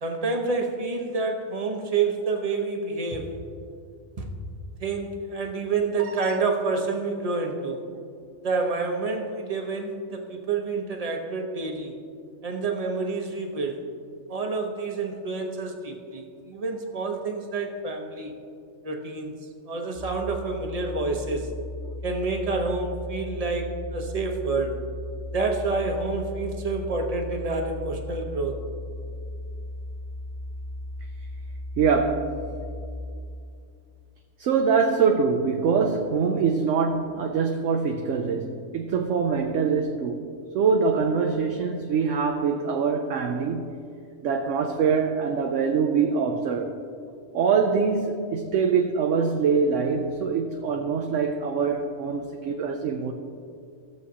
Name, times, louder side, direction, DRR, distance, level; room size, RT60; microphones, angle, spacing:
voice 1, 0.0-3.4 4.2-4.3 4.8-7.8 8.4-11.9 12.4-13.8 14.3-18.3 18.8-19.3 19.7-21.5 22.0-24.8 25.3-28.6, right 3 dB, 30° right, 3 dB, 0.8 m, -28 dB
sound 1, 20.0-32.9, left 1 dB, 25° left, 1.0 m, -36 dB
voice 2, 31.8-32.4 34.4-40.3 40.5-43.7 44.2-46.8 47.3-53.1, right 5 dB, 65° right, 4 dB, 0.9 m, -24 dB
16.5 x 7.1 x 2.8 m, 2.4 s
omnidirectional pair, 1.5 m